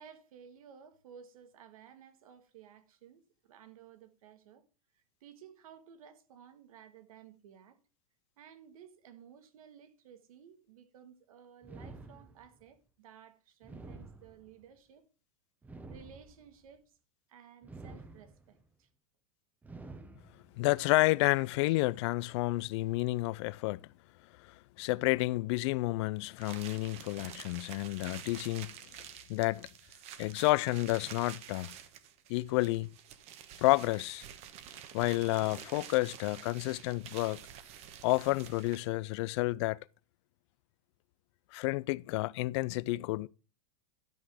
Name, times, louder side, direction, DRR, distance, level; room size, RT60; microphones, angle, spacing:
voice 1, 0.0-4.7 4.9-7.8 8.4-15.0 15.9-17.0 17.3-18.9 28.0-28.2, right 8 dB, 85° right, 1.7 m, -56 dB
sound 1, 11.6-12.7 13.6-14.7 15.6-16.7 17.6-18.7 19.6-20.7, right 3 dB, 10° right, 0.9 m, -49 dB
voice 2, 20.6-23.8 24.8-28.7 29.3-29.7 30.2-31.7 32.3-32.9 33.6-34.3 34.9-37.4 38.0-39.8 41.5-43.3, left 20 dB, 55° left, 0.4 m, -30 dB
sound 2, 26.4-39.0, right 9 dB, 35° right, 1.2 m, -49 dB
12.5 x 6.0 x 4.9 m
supercardioid pair, 150°, 18 cm